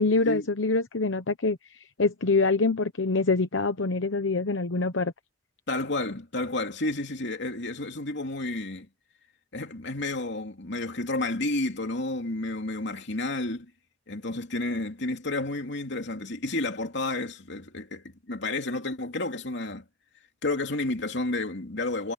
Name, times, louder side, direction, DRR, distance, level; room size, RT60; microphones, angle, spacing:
voice 1, 0.0-5.1, left 3 dB, 85° left, 1.0 m, -25 dB
voice 2, 5.7-8.9 9.5-13.7 14.1-19.8 20.4-22.1, left 2 dB, 65° left, 3.0 m, -31 dB
head